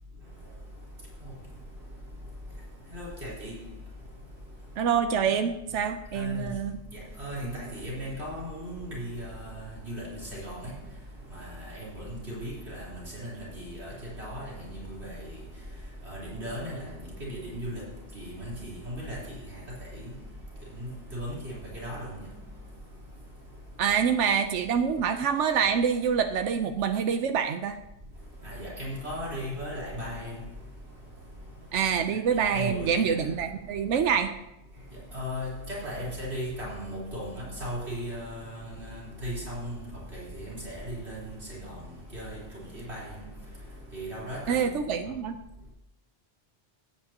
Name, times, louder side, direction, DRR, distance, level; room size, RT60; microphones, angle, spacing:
voice 1, 0.1-4.9 5.2-5.5 5.8-5.9 6.1-23.9 28.1-33.3 33.6-33.8 34.7-45.1, equal, 65° right, 4.3 m, -38 dB
voice 2, 4.8-6.7 23.8-27.8 31.7-34.3 44.5-45.4, right 7 dB, 85° right, 1.0 m, -26 dB
16.5 x 9.1 x 2.9 m
omnidirectional pair, 1.2 m